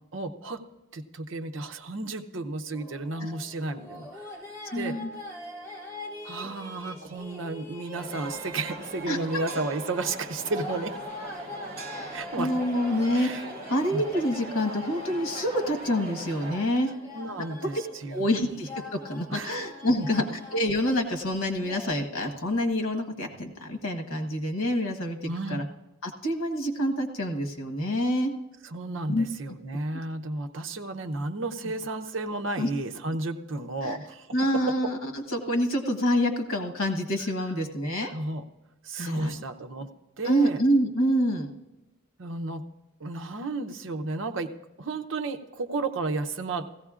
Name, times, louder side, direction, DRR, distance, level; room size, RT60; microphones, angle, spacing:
voice 1, 0.1-0.6 0.9-4.3 4.7-5.0 6.2-11.0 12.1-12.5 13.1-13.4 13.9-14.0 17.0-18.3 19.3-19.6 20.0-20.1 25.3-25.7 28.6-34.3 34.7-34.9 38.1-38.5 38.8-39.9 40.2-40.6 42.2-42.7 43.0-44.5 44.8-46.7, right 2 dB, 65° right, 9 dB, 0.7 m, -33 dB
sound 1, 2.7-21.9, left 1 dB, 15° left, 1.5 m, -43 dB
voice 2, 4.7-5.1 6.4-6.5 9.1-9.2 11.9-13.4 13.7-16.9 18.1-18.7 19.0-20.2 20.5-25.6 26.0-28.3 29.1-29.3 32.6-32.7 33.8-34.0 34.3-38.1 39.0-39.4 40.2-41.5, equal, 90° left, 4 dB, 1.3 m, -27 dB
sound 2, 7.9-16.6, right 1 dB, 30° right, 2.0 m, -41 dB
16.5 x 15.0 x 2.4 m, 1.0 s
head